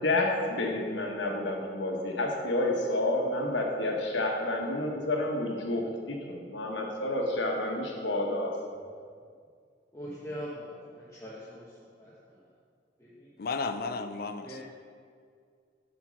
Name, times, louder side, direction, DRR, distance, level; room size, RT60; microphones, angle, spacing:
voice 1, 0.0-8.6, left 2 dB, 75° left, 1 dB, 1.1 m, -29 dB
voice 2, 9.9-11.7 12.0-12.1 13.0-13.3 14.4-14.6, equal, 15° left, -7 dB, 1.0 m, -41 dB
voice 3, 13.4-14.6, left 4 dB, 55° left, 9 dB, 0.5 m, -33 dB
8.0 x 4.4 x 6.3 m, 2.1 s
head